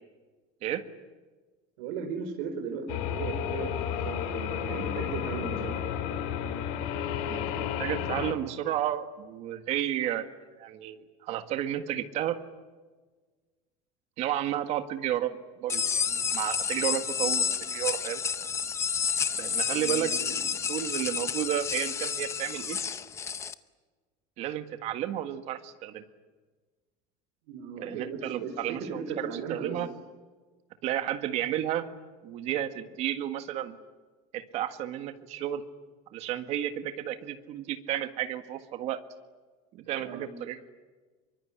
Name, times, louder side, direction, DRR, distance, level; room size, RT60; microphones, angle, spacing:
voice 1, 1.8-5.8 19.7-20.4 27.5-29.8 40.0-40.3, right 5 dB, 75° right, 3 dB, 4.5 m, -37 dB
sound 1, 2.9-8.3, left 8 dB, 65° left, 3.0 m, -32 dB
voice 2, 7.3-10.3 10.6-12.4 14.2-18.2 19.3-20.1 20.5-22.8 24.4-26.0 27.8-29.9 30.8-31.8 32.2-33.8 34.3-35.6 36.1-39.0 39.7-40.7, right 11 dB, 40° right, 9 dB, 1.8 m, -32 dB
sound 2, 15.7-23.5, left 6 dB, 15° left, 0.8 m, -30 dB
25.0 x 23.5 x 9.9 m, 1.4 s
cardioid pair, 180°, 17 cm